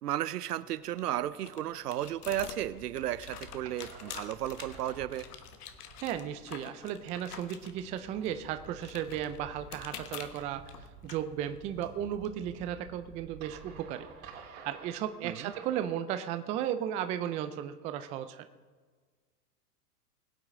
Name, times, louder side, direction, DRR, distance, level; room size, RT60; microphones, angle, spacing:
voice 1, 0.0-5.3 15.2-15.5, right 12 dB, 75° right, 17 dB, 0.7 m, -34 dB
sound 1, 0.6-12.3, left 8 dB, 70° left, 1.3 m, -48 dB
sound 2, 2.5-15.9, right 4 dB, 50° right, 3.8 m, -52 dB
voice 2, 6.0-10.6 11.0-14.1 14.6-18.4, right 10 dB, 15° right, 10 dB, 0.4 m, -35 dB
21.0 x 8.6 x 3.7 m, 1.5 s
hypercardioid pair, 105°, 48 cm